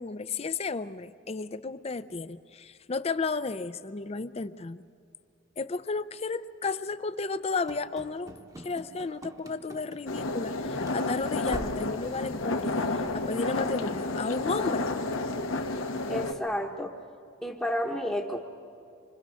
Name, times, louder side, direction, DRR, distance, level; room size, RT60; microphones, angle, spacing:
voice 1, 0.0-4.8 5.6-14.9, left 4 dB, 30° left, 14 dB, 0.5 m, -33 dB
Run / Slam, 7.7-10.6 10.8-11.0 11.4-11.9, right 1 dB, 15° right, 0.9 m, -43 dB
sound 1, 10.1-16.3, left 2 dB, 90° left, 1.3 m, -31 dB
voice 2, 16.1-16.9 17.4-18.4, equal, 10° left, -2 dB, 1.0 m, -31 dB
26.0 x 24.5 x 6.3 m, 2.4 s
head